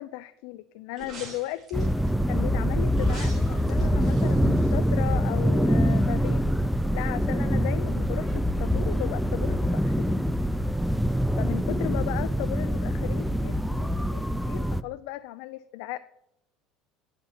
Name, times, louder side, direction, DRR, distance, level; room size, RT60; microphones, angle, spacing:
voice 1, 0.0-1.9 2.3-6.5 6.9-10.3 11.4-16.0, left 16 dB, 75° left, 13 dB, 0.4 m, -36 dB
sound 1, 0.9-2.1 2.9-5.4 5.7-5.8, right 3 dB, 30° right, 3.3 m, -45 dB
sound 2, 1.7-14.8, equal, ahead, 0.4 m, -25 dB
10.5 x 5.9 x 5.7 m, 0.77 s
cardioid pair, 135°, 0 cm